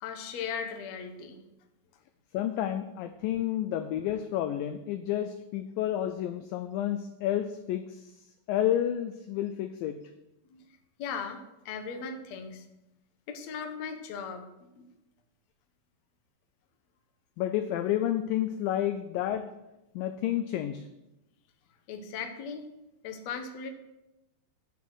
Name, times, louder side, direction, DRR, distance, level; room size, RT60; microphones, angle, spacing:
voice 1, 0.0-1.4 10.5-10.7 11.0-11.4 11.7-12.6 13.3-14.4 14.8-14.9 21.9-22.7 23.0-23.7, left 6 dB, 65° left, 5 dB, 1.8 m, -37 dB
voice 2, 2.3-8.1 8.5-10.0 17.4-19.4 20.0-20.8, left 11 dB, 80° left, 9 dB, 2.1 m, -30 dB
10.5 x 7.1 x 6.2 m, 0.94 s
omnidirectional pair, 4.5 m